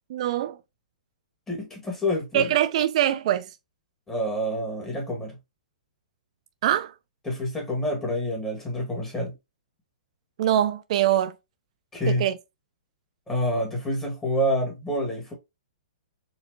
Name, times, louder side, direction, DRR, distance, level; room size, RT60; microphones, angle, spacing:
voice 1, 0.1-0.6 2.3-3.5 6.6-6.9 10.4-11.3 12.1-12.4, right 11 dB, 50° right, 0.3 m, -23 dB
voice 2, 1.5-2.5 4.1-5.4 7.2-9.3 11.9-12.2 13.3-15.3, equal, 10° left, 1.7 m, -27 dB
4.4 x 2.7 x 2.7 m
hypercardioid pair, 140°, 4 cm